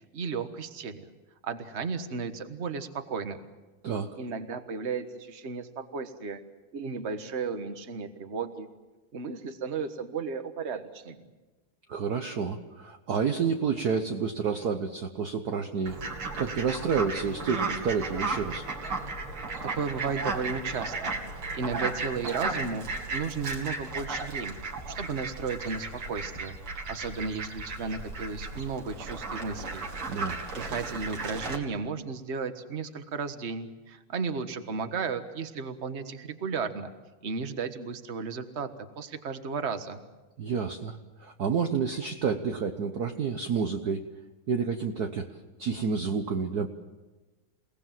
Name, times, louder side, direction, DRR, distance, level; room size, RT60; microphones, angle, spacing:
voice 1, 0.1-1.0 1.4-3.4 4.2-6.4 6.7-8.7 9.1-11.3 19.6-22.8 23.1-24.6 24.8-29.9 30.5-36.9 37.2-38.7 39.0-40.0, right 5 dB, 35° right, 8 dB, 1.5 m, -34 dB
voice 2, 3.8-4.2 11.9-16.0 16.4-18.7 30.1-30.4 40.4-44.1 44.5-45.3 45.6-46.7, right 6 dB, 55° right, 5 dB, 1.4 m, -29 dB
Fowl, 15.9-31.6, right 3 dB, 75° right, 3.5 m, -35 dB
29.0 x 18.5 x 7.6 m, 1.2 s
omnidirectional pair, 2.4 m